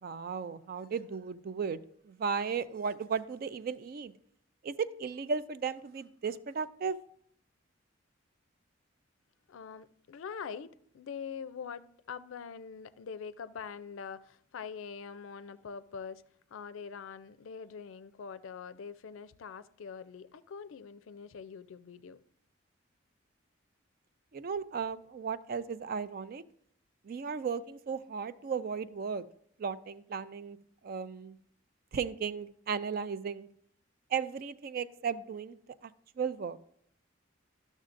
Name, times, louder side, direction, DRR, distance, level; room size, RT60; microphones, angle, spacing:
voice 1, 0.0-1.8 2.1-4.1 4.6-7.0 24.3-26.4 27.0-29.3 29.6-30.6 30.8-31.4 31.9-33.5 34.1-35.6 35.8-35.9 36.2-36.6, right 6 dB, 45° right, 0.3 m, -35 dB
voice 2, 9.5-16.2 16.5-22.2, left 6 dB, 80° left, 0.4 m, -44 dB
12.5 x 6.3 x 2.5 m
head